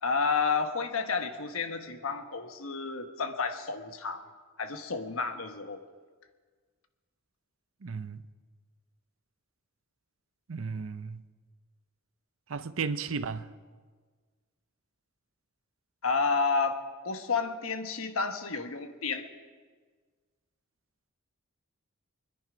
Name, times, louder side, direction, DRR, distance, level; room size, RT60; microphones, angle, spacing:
voice 1, 0.0-4.2 4.6-5.8 16.0-19.3, left 4 dB, 85° left, 1.2 m, -31 dB
voice 2, 7.8-8.2 10.5-11.2 12.5-13.5, right 5 dB, 80° right, 0.6 m, -34 dB
24.0 x 10.5 x 5.1 m
head